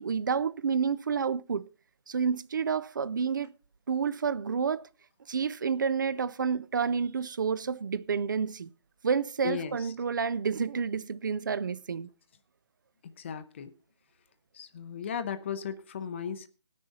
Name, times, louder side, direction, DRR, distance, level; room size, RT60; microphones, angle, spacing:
voice 1, 0.0-1.7 2.1-3.5 3.9-4.9 5.3-8.7 9.0-12.1, right 6 dB, 45° right, 0.4 m, -29 dB
voice 2, 9.4-9.9 13.0-13.7 14.5-16.5, left 7 dB, 25° left, 0.6 m, -36 dB
19.0 x 6.4 x 4.1 m
figure-of-eight pair, 155°, 15 cm